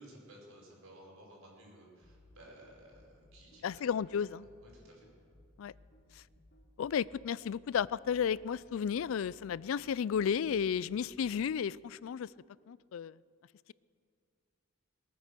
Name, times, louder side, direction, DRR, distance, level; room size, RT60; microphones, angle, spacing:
voice 1, 0.0-3.8 4.6-5.1, right 1 dB, 85° right, 5.1 m, -55 dB
sound 1, 2.0-11.4, left 1 dB, 55° left, 2.5 m, -61 dB
voice 2, 3.6-4.5 5.6-5.7 6.8-12.3 12.7-13.1, left 7 dB, 75° left, 0.3 m, -33 dB
22.0 x 9.6 x 6.7 m
head